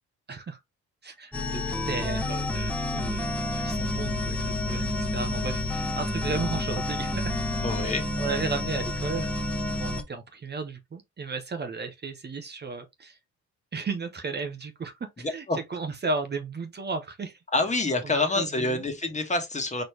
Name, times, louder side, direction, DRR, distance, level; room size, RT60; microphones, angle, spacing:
voice 1, 0.3-0.6 1.0-7.3 7.8-9.4 9.7-13.2 13.7-17.4 18.0-18.8, right 4 dB, 35° right, 0.9 m, -34 dB
sound 1, 1.3-10.0, left 1 dB, 5° left, 1.2 m, -29 dB
voice 2, 7.6-8.1 15.2-15.6 17.5-19.8, left 2 dB, 25° left, 1.5 m, -27 dB
4.4 x 3.2 x 3.2 m
cardioid pair, 90°, 30 cm